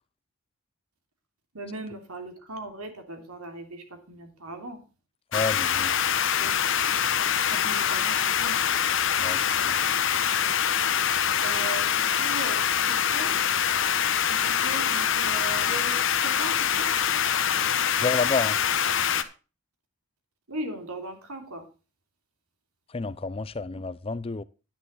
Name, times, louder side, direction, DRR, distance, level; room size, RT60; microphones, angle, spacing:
voice 1, 1.5-4.8 6.4-6.6 7.2-8.6 11.4-13.3 14.2-16.9 20.5-21.6, right 2 dB, 85° right, 3.0 m, -39 dB
sound 1, 5.3-19.2, left 8 dB, 60° left, 0.9 m, -24 dB
voice 2, 5.3-5.9 9.2-9.7 18.0-18.6 22.9-24.4, left 3 dB, 25° left, 0.5 m, -30 dB
10.5 x 10.0 x 4.0 m
head